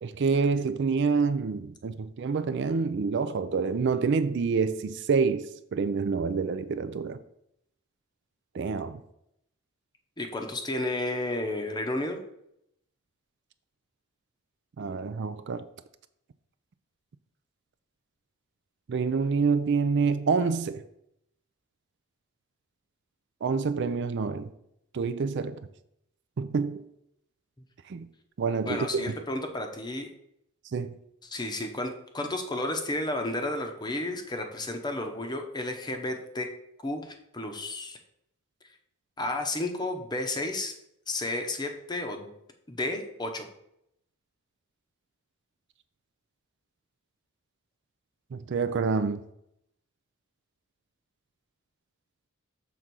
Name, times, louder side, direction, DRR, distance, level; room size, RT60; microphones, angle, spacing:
voice 1, 0.0-7.2 8.5-9.0 14.8-15.7 18.9-20.8 23.4-24.5 24.9-25.6 26.4-26.8 27.9-28.1 28.4-29.0 30.7-31.0 48.3-49.2, right 5 dB, 55° right, 0.4 m, -27 dB
voice 2, 10.2-12.2 28.7-30.1 31.2-36.5 36.8-38.0 39.2-40.8 41.1-42.3 42.7-43.5, left 2 dB, 20° left, 0.8 m, -32 dB
6.9 x 3.7 x 6.0 m
head